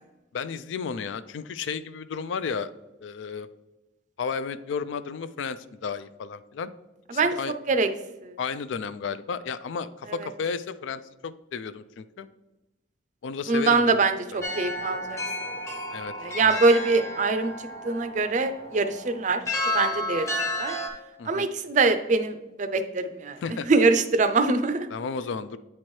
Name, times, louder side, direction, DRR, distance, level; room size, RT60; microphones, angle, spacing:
voice 1, 0.3-2.7 3.0-3.5 4.2-6.7 7.1-7.5 8.4-12.3 13.2-14.0 14.3-14.4 15.9-16.1 16.4-16.6 21.2-21.5 23.4-23.7 24.9-25.6, left 5 dB, 75° left, 14 dB, 0.3 m, -33 dB
voice 2, 13.5-15.2 16.2-17.5 17.8-19.4 19.7-20.3 20.6-20.7 21.3-23.4 23.7-24.9, right 3 dB, 40° right, 9 dB, 0.4 m, -23 dB
sound 1, 14.4-20.9, left 1 dB, 15° left, 0.8 m, -32 dB
8.6 x 4.4 x 3.1 m, 1.0 s
head